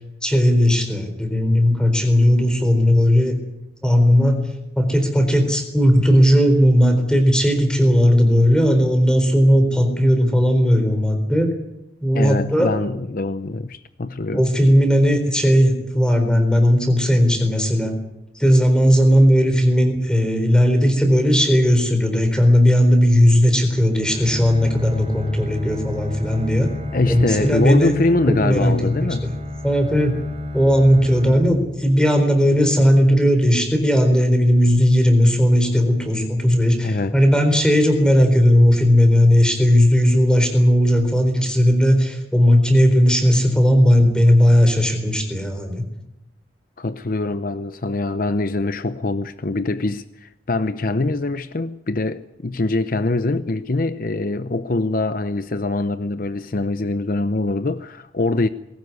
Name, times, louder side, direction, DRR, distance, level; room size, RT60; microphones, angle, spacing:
voice 1, 0.2-3.4 3.8-4.4 4.8-11.5 12.0-12.7 14.3-17.9 18.3-26.7 27.1-27.9 28.3-29.4 29.6-30.2 30.5-45.9, equal, 5° left, 4.0 m, -16 dB
voice 2, 12.1-14.4 26.9-29.3 36.8-37.1 46.8-58.5, left 2 dB, 50° left, 0.7 m, -23 dB
Bowed string instrument, 23.9-32.2, left 1 dB, 30° right, 5.2 m, -32 dB
20.5 x 18.0 x 9.6 m
head